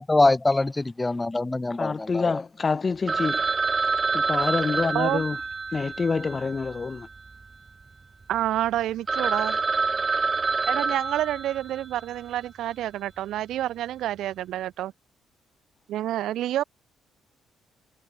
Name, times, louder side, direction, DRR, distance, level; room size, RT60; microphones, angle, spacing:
voice 1, 0.0-2.4, left 2 dB, 15° left, 6.5 m, -24 dB
voice 2, 1.8-3.4 4.1-5.4 5.7-7.1, left 4 dB, 35° left, 6.9 m, -27 dB
Telephone, 3.1-7.4 7.7-7.8 8.3-8.4 8.8-8.9 9.1-12.0, right 4 dB, 30° right, 4.4 m, -27 dB
voice 3, 8.3-9.6 10.7-14.9 15.9-16.6, right 13 dB, 80° right, 4.2 m, -28 dB
cardioid pair, 90°, 0 cm